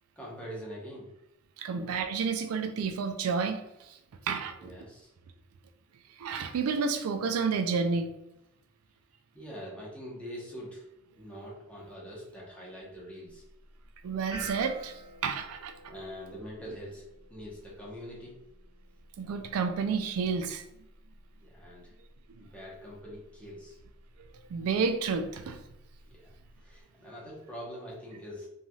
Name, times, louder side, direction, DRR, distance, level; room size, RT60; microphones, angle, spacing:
voice 1, 0.2-1.1 1.8-1.9 4.6-5.1 9.3-10.8 11.1-13.4 15.9-17.0 17.3-18.3 21.4-21.9 22.4-23.8 26.1-26.3 26.6-28.5, equal, 5° left, -5 dB, 0.9 m, -44 dB
voice 2, 1.6-4.0 4.2-4.7 6.2-8.1 14.0-15.7 19.2-20.6 22.3-22.5 24.2-25.6, right 5 dB, 85° right, 7 dB, 0.3 m, -30 dB
sound 1, 13.3-26.8, right 2 dB, 25° right, 1.3 m, -51 dB
3.1 x 2.6 x 2.3 m, 0.85 s
head